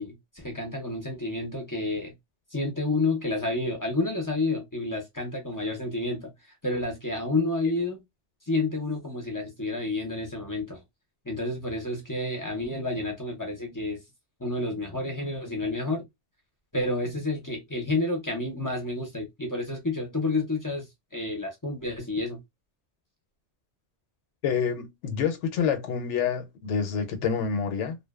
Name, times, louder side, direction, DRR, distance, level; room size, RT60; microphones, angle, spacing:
voice 1, 0.0-2.1 2.5-6.3 6.6-8.0 8.5-10.8 11.3-14.0 14.4-16.0 16.7-20.9 21.1-22.4, left 2 dB, 25° left, 0.5 m, -30 dB
voice 2, 24.4-28.0, left 7 dB, 80° left, 0.9 m, -27 dB
2.5 x 2.1 x 2.3 m
omnidirectional pair, 1.2 m